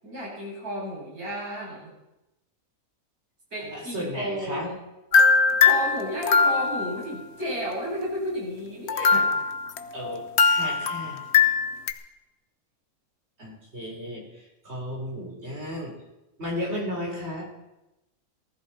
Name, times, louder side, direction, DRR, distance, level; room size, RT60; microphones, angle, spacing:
voice 1, 0.0-1.9 3.5-4.8 5.6-9.3, equal, 90° right, -5 dB, 7.7 m, -32 dB
voice 2, 3.6-4.7 9.9-11.3 13.4-15.9 16.4-17.4, equal, 45° right, -2 dB, 4.5 m, -34 dB
sound 1, 5.1-7.0 8.9-11.9, left 5 dB, 50° left, 1.1 m, -21 dB
19.0 x 14.0 x 4.4 m, 0.97 s
omnidirectional pair, 1.5 m